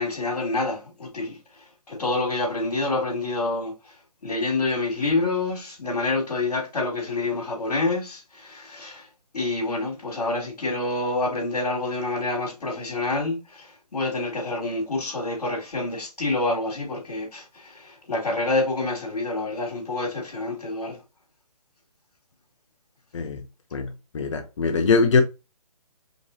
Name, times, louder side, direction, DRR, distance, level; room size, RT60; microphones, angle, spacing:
voice 1, 0.0-3.9 4.2-9.1 9.3-21.0, left 2 dB, 75° left, 2.8 m, -27 dB
voice 2, 23.1-23.4 23.7-25.2, left 4 dB, 50° left, 0.7 m, -22 dB
5.2 x 3.0 x 2.8 m
hypercardioid pair, 155°, 20 cm